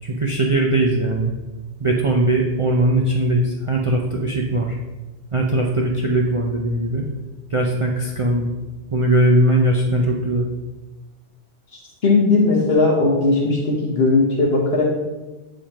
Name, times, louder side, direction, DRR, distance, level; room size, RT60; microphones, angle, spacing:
voice 1, 0.0-1.3 1.8-4.8 5.3-7.1 7.5-8.5 8.9-10.5, right 1 dB, 45° right, -1 dB, 0.4 m, -19 dB
voice 2, 12.0-14.9, left 3 dB, 60° left, -2 dB, 1.2 m, -17 dB
7.2 x 5.0 x 2.9 m, 1.2 s
omnidirectional pair, 1.2 m